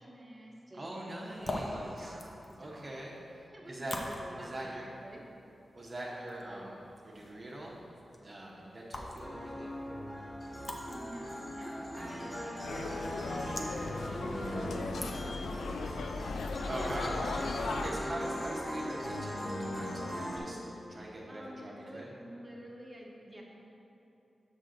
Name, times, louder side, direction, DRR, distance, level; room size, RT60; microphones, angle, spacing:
voice 1, 0.0-1.1 1.4-2.9 3.5-5.3 10.9-16.0 17.0-17.4 17.8-19.3 21.3-23.4, right 1 dB, 20° right, -4 dB, 1.4 m, -49 dB
voice 2, 0.7-2.1 2.6-4.0 4.4-4.8 5.7-6.8 7.0-7.8 8.2-9.7 12.0-12.1 16.6-17.5 17.8-22.1, right 1 dB, 50° right, -5 dB, 1.0 m, -42 dB
sound 1, 1.2-15.6, left 1 dB, 50° left, 0.8 m, -46 dB
sound 2, 9.2-20.4, equal, 25° left, 1.5 m, -39 dB
sound 3, 12.6-17.9, left 3 dB, 90° left, 0.3 m, -37 dB
6.2 x 6.2 x 3.8 m, 3.0 s
cardioid pair, 50°, 0 cm